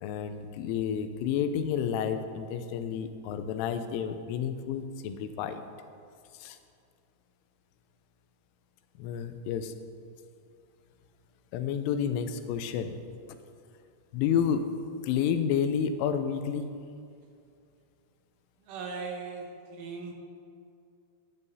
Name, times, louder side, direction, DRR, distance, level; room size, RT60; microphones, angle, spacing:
voice 1, 0.0-5.7 6.4-6.6 9.0-9.8 11.5-13.0 14.1-16.7, left 8 dB, 85° left, 9 dB, 3.1 m, -30 dB
voice 2, 18.6-20.1, right 4 dB, 85° right, 1 dB, 3.6 m, -38 dB
15.0 x 11.0 x 2.7 m, 2.4 s
omnidirectional pair, 5.6 m